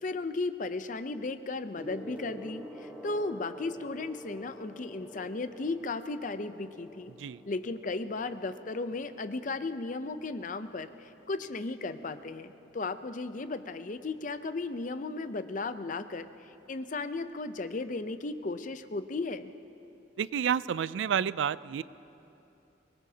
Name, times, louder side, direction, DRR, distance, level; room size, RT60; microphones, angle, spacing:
voice 1, 0.0-7.1 7.5-16.3 16.7-19.5, left 3 dB, 45° left, 11 dB, 0.5 m, -35 dB
Gong, 1.8-11.5 12.5-12.7, equal, 10° right, 1.2 m, -49 dB
voice 2, 20.2-21.8, right 8 dB, 85° right, 18 dB, 0.3 m, -29 dB
23.5 x 20.5 x 2.8 m, 2.9 s
head